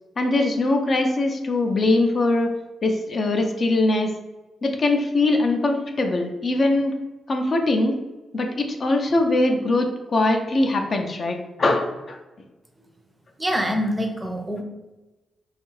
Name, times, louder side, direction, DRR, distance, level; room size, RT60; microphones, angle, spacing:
voice 1, 0.2-2.5 2.8-4.1 4.6-6.9 7.3-8.0 8.3-12.2, left 2 dB, 45° left, 4 dB, 0.4 m, -22 dB
voice 2, 13.4-14.6, equal, 15° right, 3 dB, 0.5 m, -25 dB
2.6 x 2.3 x 3.1 m, 1.1 s
cardioid pair, 100°, 0 cm